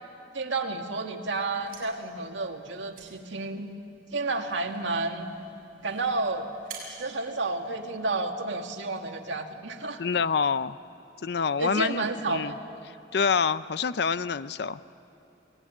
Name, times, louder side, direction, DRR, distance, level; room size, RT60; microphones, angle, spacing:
voice 1, 0.3-3.7 4.1-5.3 5.8-6.5 6.9-10.0 11.6-12.5, right 3 dB, 85° right, 4 dB, 2.0 m, -31 dB
sound 1, 1.4-8.2, right 5 dB, 50° right, 6.3 m, -50 dB
voice 2, 10.0-10.8 11.2-12.5 13.1-14.8, left 5 dB, 60° left, 14 dB, 0.5 m, -26 dB
27.5 x 19.5 x 9.9 m, 3.0 s
head